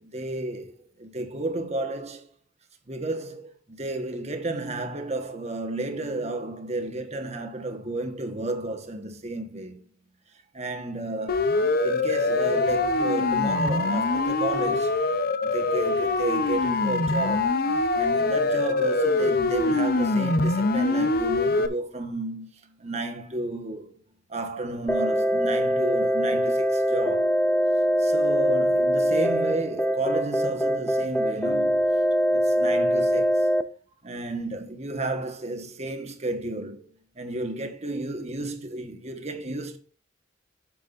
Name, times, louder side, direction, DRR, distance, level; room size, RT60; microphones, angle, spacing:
voice 1, 0.0-2.3 2.9-9.8 10.5-11.5 11.8-15.1 15.4-17.6 17.9-24.0 24.3-27.3 28.0-31.8 32.3-33.5 34.0-36.9 37.1-39.8, right 2 dB, 35° right, 1.5 m, -32 dB
Siren, 11.3-21.7, left 3 dB, 50° left, 0.8 m, -24 dB
sound 1, 24.9-33.6, equal, 10° left, 0.5 m, -23 dB
9.1 x 7.7 x 2.7 m
head